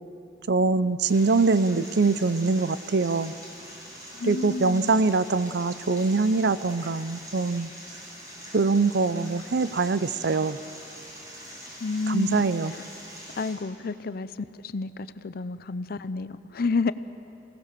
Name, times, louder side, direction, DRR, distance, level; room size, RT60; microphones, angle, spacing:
voice 1, 0.5-3.3 4.3-7.7 8.5-10.6 12.1-12.7, right 3 dB, 60° right, 15 dB, 0.6 m, -23 dB
sound 1, 1.0-13.5, equal, 20° right, 5.7 m, -44 dB
voice 2, 4.1-5.0 11.8-12.4 12.7-12.8 13.4-14.3 14.6-16.9, left 4 dB, 55° left, 14 dB, 0.6 m, -30 dB
27.0 x 18.0 x 6.8 m, 2.8 s
head